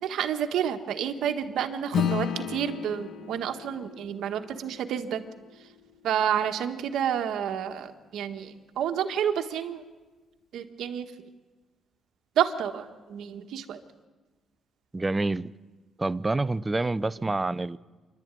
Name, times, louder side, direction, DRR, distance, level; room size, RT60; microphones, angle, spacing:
voice 1, 0.0-5.2 6.0-9.8 10.5-11.1 12.3-13.8, right 9 dB, 75° right, 1.5 m, -29 dB
Acoustic guitar / Strum, 1.9-6.7, left 8 dB, 65° left, 1.4 m, -34 dB
voice 2, 14.9-15.5 16.0-17.8, right 2 dB, 20° right, 0.6 m, -27 dB
27.0 x 12.0 x 9.1 m
cardioid pair, 90°, 0 cm